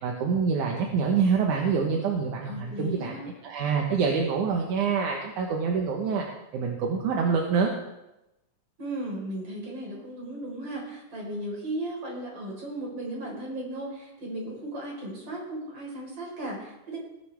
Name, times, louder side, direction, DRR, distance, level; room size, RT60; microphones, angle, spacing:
voice 1, 0.0-3.1 3.4-6.2 6.5-7.7, right 5 dB, 80° right, 0 dB, 2.7 m, -26 dB
voice 2, 2.5-3.3 8.8-17.0, right 1 dB, 50° right, -2 dB, 5.6 m, -36 dB
18.5 x 11.5 x 3.6 m, 0.93 s
omnidirectional pair, 3.5 m